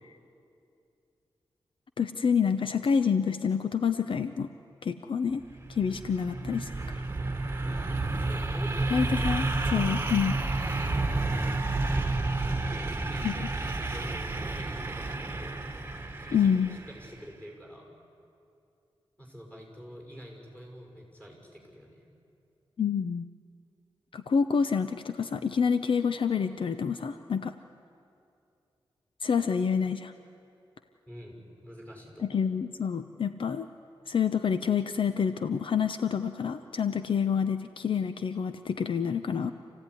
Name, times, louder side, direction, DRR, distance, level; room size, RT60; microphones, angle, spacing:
voice 1, 2.0-4.5 4.8-5.4 5.7-7.0 8.9-10.4 13.2-13.3 16.3-16.7 22.8-23.3 24.1-27.5 29.2-30.1 32.2-33.7 34.1-39.5, left 6 dB, 65° left, 9 dB, 0.7 m, -28 dB
sound 1, 5.4-17.1, right 2 dB, 25° right, 1.6 m, -30 dB
voice 2, 7.7-9.1 12.7-15.6 16.2-17.9 19.2-22.1 31.1-32.4, equal, 15° left, 0 dB, 6.3 m, -47 dB
28.0 x 16.0 x 9.9 m, 2.6 s
wide cardioid pair, 115°, 9 cm